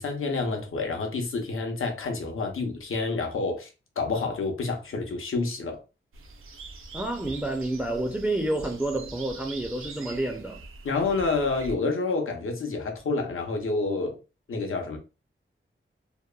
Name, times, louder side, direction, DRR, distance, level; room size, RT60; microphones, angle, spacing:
voice 1, 0.0-5.8 10.8-14.2 14.5-15.0, left 3 dB, 80° left, 0.7 m, -28 dB
sound 1, 6.1-11.8, right 3 dB, 80° right, 0.4 m, -43 dB
voice 2, 6.9-10.6, right 2 dB, 5° right, 0.3 m, -29 dB
2.8 x 2.1 x 2.2 m
wide cardioid pair, 90°, 21 cm